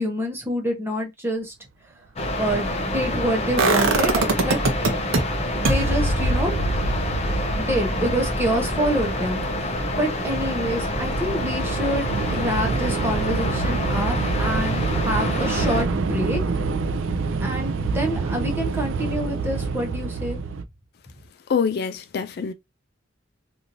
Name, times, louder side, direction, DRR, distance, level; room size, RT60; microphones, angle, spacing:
voice 1, 0.0-1.5 2.4-4.6 5.6-6.7 7.6-9.4 9.9-16.4 17.4-20.4, equal, 10° right, 0.9 m, -27 dB
sound 1, 2.2-15.8, left 1 dB, 35° left, 0.7 m, -27 dB
sound 2, 3.6-5.2 5.6-11.5 11.8-11.9, right 2 dB, 90° right, 0.7 m, -25 dB
Train / Subway metro underground, 7.7-7.8 8.1-20.6, right 4 dB, 70° right, 0.4 m, -27 dB
voice 2, 21.5-22.5, left 6 dB, 55° left, 0.3 m, -25 dB
3.1 x 2.6 x 2.6 m
head